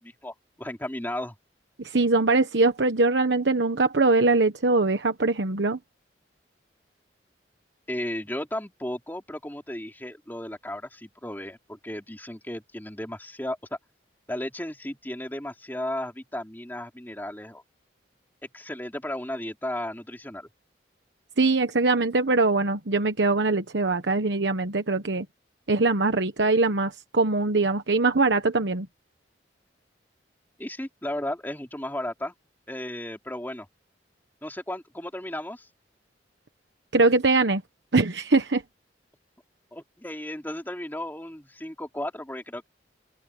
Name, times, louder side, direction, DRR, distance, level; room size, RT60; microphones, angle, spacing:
voice 1, 0.0-1.3 7.9-13.8 14.3-17.6 18.5-20.5 30.6-32.3 32.7-33.7 34.4-35.7 39.7-42.7, left 1 dB, 10° left, 3.3 m, -34 dB
voice 2, 1.8-5.8 21.4-25.2 25.7-28.9 36.9-37.6 37.9-38.6, right 3 dB, 80° right, 1.1 m, -22 dB
open air
head